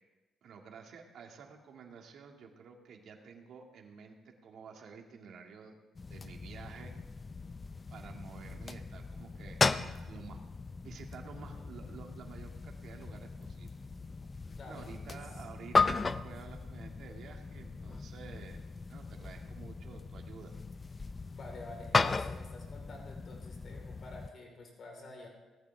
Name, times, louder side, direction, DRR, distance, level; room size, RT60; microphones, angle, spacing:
voice 1, 0.4-5.7 6.1-6.9 7.9-10.4 10.8-13.7 14.6-18.6 18.9-20.6, right 6 dB, 65° right, 2 dB, 2.1 m, -51 dB
sound 1, 6.0-24.3, left 4 dB, 30° left, 0.5 m, -36 dB
voice 2, 14.4-15.4 21.3-25.3, left 2 dB, 55° left, 1 dB, 4.1 m, -50 dB
18.0 x 14.0 x 3.5 m, 1.2 s
cardioid pair, 90°, 0 cm